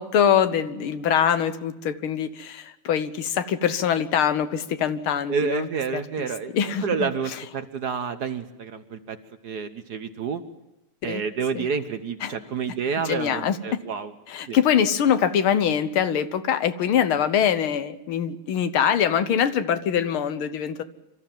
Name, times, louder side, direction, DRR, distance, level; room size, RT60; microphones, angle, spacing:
voice 1, 0.0-6.3 6.5-7.4 11.1-11.2 11.5-11.7 12.2-12.3 13.1-13.8 14.3-20.8, left 8 dB, 75° left, 12 dB, 1.9 m, -23 dB
voice 2, 5.3-6.5 6.8-9.2 9.4-10.4 11.0-14.1 14.5-14.6, right 6 dB, 55° right, 10 dB, 1.4 m, -29 dB
25.5 x 14.0 x 9.1 m, 0.99 s
omnidirectional pair, 2.4 m